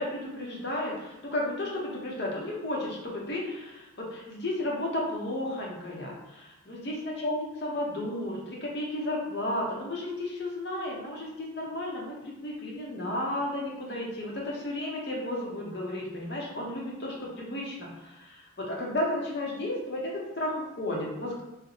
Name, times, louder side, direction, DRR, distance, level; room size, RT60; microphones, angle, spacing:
voice 1, 0.0-21.5, left 1 dB, 55° left, -3 dB, 0.7 m, -33 dB
4.0 x 2.1 x 2.9 m, 0.95 s
head